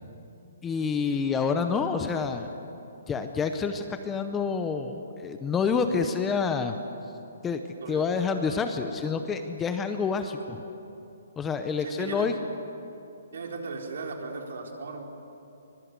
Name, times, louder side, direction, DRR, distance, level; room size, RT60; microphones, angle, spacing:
voice 1, 0.6-2.5 3.1-6.8 7.4-7.6 7.9-10.6 11.4-12.4, left 5 dB, 10° left, 7 dB, 0.7 m, -28 dB
voice 2, 7.8-8.2 11.8-12.3 13.3-15.0, right 4 dB, 60° right, 1 dB, 4.1 m, -37 dB
23.5 x 22.0 x 8.2 m, 2.8 s
hypercardioid pair, 175°, 0 cm